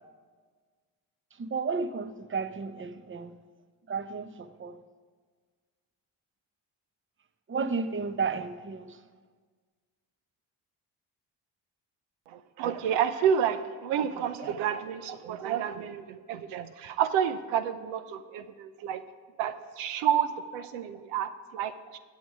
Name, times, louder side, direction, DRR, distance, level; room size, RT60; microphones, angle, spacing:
voice 1, 1.4-3.4 3.9-4.8 7.5-9.0, right 5 dB, 25° right, 0.8 m, -32 dB
voice 2, 12.3-19.0 19.4-22.0, right 9 dB, 80° right, 0.7 m, -30 dB
16.0 x 8.3 x 4.8 m
hypercardioid pair, 45°, 49 cm